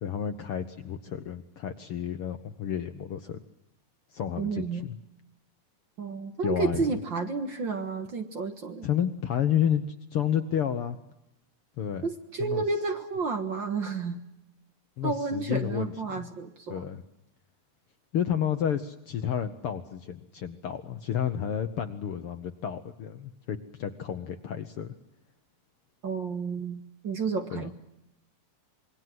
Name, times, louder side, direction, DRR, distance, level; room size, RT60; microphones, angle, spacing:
voice 1, 0.0-3.4 4.1-5.0 6.4-6.8 8.8-11.0 11.8-12.1 12.4-12.6 15.0-16.3 16.7-17.0 18.1-24.9 27.5-27.7, left 9 dB, 60° left, 9 dB, 1.6 m, -31 dB
voice 2, 4.4-4.9 6.0-8.9 12.0-14.2 15.0-16.9 26.0-27.7, right 4 dB, 45° right, 7 dB, 1.8 m, -31 dB
26.5 x 22.5 x 7.7 m, 0.83 s
omnidirectional pair, 3.5 m